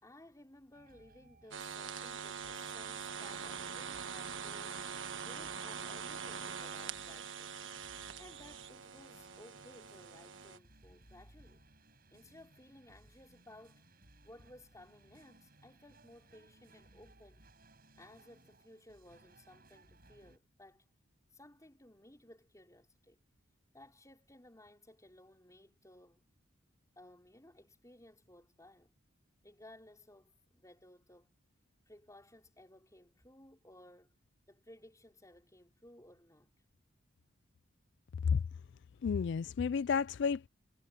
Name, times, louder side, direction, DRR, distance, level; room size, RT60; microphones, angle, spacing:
voice 1, 0.0-4.8 5.2-7.5 8.2-11.6 12.1-13.8 14.2-17.5 18.0-20.8 21.3-23.2 23.7-26.3 26.9-28.9 29.4-31.3 31.9-34.2 34.5-36.5, left 1 dB, 15° left, 4.6 m, -58 dB
sound 1, 0.7-20.4, right 2 dB, 45° right, 6.8 m, -63 dB
sound 2, 1.5-10.6, right 6 dB, 65° right, 1.4 m, -43 dB
voice 2, 39.0-40.5, left 6 dB, 60° left, 0.3 m, -31 dB
head